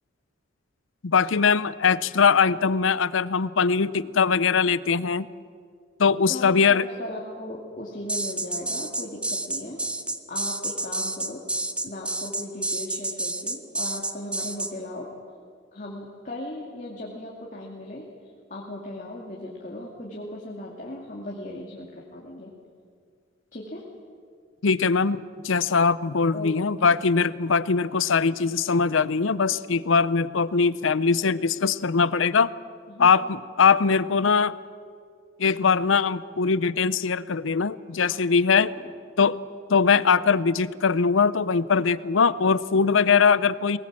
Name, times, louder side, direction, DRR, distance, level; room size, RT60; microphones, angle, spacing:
voice 1, 1.0-5.3 6.0-6.9 24.6-32.5 33.0-34.5 35.4-38.7 39.2-39.4 39.7-43.8, left 5 dB, 90° left, 18 dB, 0.6 m, -21 dB
voice 2, 6.3-9.8 10.3-11.4 11.8-15.1 15.7-18.0 18.5-22.5 23.5-23.8 26.3-26.5 26.8-27.1 32.9-33.1 38.0-38.2 38.7-38.9, left 1 dB, 40° left, -2 dB, 2.4 m, -37 dB
sound 1, 8.1-14.7, right 2 dB, 5° right, 0.8 m, -29 dB
22.5 x 19.5 x 7.5 m, 2.2 s
head